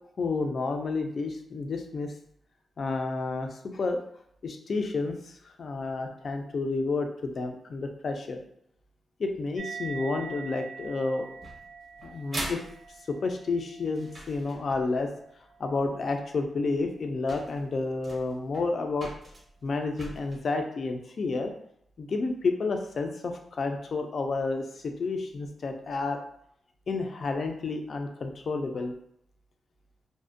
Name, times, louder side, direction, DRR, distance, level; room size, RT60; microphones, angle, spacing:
voice 1, 0.2-2.1 2.8-4.0 4.4-8.4 9.2-11.3 12.0-12.6 13.1-15.1 15.6-19.1 19.6-21.5 22.0-26.2 26.9-28.9, left 3 dB, 45° left, 4 dB, 0.3 m, -30 dB
sound 1, 9.6-16.5, right 6 dB, 90° right, 0.4 m, -45 dB
sound 2, 11.4-15.0 16.4-16.5 17.0-17.1 17.3-20.4, right 1 dB, 35° right, 0.5 m, -42 dB
2.5 x 2.1 x 2.5 m, 0.72 s
wide cardioid pair, 150°, 0 cm